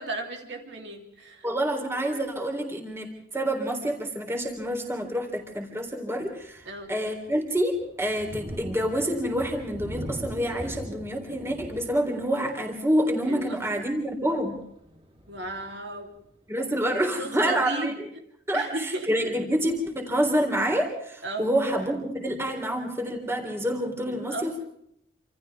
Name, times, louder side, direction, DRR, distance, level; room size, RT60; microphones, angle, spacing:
voice 1, 0.0-1.5 1.9-2.1 6.7-6.9 13.3-13.8 15.3-16.2 16.9-18.2 18.5-19.4 21.2-21.5 24.3-24.6, right 2 dB, 60° right, 2 dB, 3.4 m, -35 dB
voice 2, 1.4-14.6 16.5-18.1 18.5-24.6, equal, 15° right, 2 dB, 3.6 m, -27 dB
Thunder, 4.4-4.8 5.3-5.5 5.9-16.5, equal, 30° right, 3.2 m, -42 dB
28.0 x 27.5 x 3.6 m, 0.73 s
head